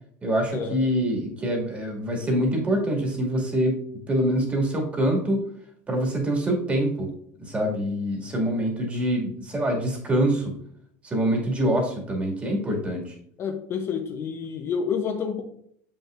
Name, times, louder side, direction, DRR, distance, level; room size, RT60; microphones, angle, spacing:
voice 1, 0.2-3.8 4.1-5.4 5.9-7.1 7.4-10.5 11.0-13.1, right 1 dB, 20° right, 0 dB, 2.1 m, -25 dB
voice 2, 13.4-15.4, left 6 dB, 35° left, 4 dB, 0.7 m, -29 dB
7.2 x 5.5 x 2.5 m, 0.65 s
supercardioid pair, 130°, 7 cm